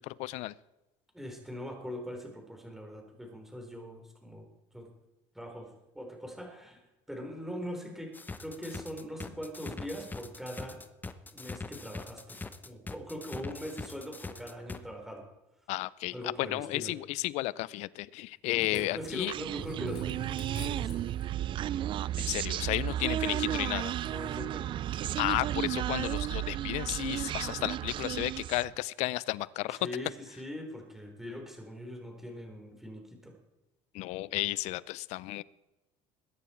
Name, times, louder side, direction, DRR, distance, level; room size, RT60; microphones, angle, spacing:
voice 1, 0.1-0.5 15.7-19.3 22.2-23.9 25.2-29.8 33.9-35.4, left 19 dB, 70° left, 20 dB, 0.6 m, -33 dB
voice 2, 1.1-4.5 4.7-4.9 5.3-6.8 7.1-10.8 11.3-15.3 16.1-16.9 18.5-21.0 23.1-23.8 24.0-24.8 29.7-33.3, equal, 5° right, 2 dB, 4.1 m, -42 dB
sound 1, 8.1-14.8, left 3 dB, 15° left, 1.0 m, -42 dB
sound 2, 18.2-21.5 23.4-24.5 24.8-25.4 25.9-26.4 27.0-27.3 27.8-28.1 29.5-29.6, left 6 dB, 50° left, 2.7 m, -52 dB
Human voice, 19.3-28.8, right 12 dB, 45° right, 0.3 m, -33 dB
21.5 x 9.4 x 4.5 m, 1.0 s
supercardioid pair, 105°, 12 cm